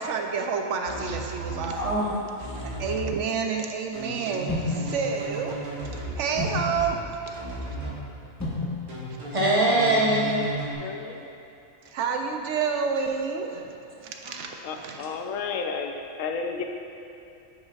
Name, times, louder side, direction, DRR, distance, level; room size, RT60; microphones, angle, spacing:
voice 1, 0.0-1.9 2.6-5.6 5.9-7.4 11.9-15.0, right 5 dB, 70° right, 3 dB, 0.8 m, -29 dB
sound 1, 0.8-2.0 2.4-3.0 3.9-6.9 7.3-8.0 8.9-10.7, right 3 dB, 90° right, 2.1 m, -35 dB
voice 2, 1.7-2.7 9.3-10.4 10.9-11.0 14.2-14.4 14.9-15.1, right 1 dB, 25° right, -5 dB, 1.1 m, -24 dB
sound 2, 4.5-10.5, left 2 dB, 15° left, 1.0 m, -36 dB
voice 3, 10.8-11.3 14.6-16.6, left 5 dB, 70° left, 4 dB, 1.0 m, -32 dB
9.6 x 6.4 x 2.4 m, 2.7 s
omnidirectional pair, 1.4 m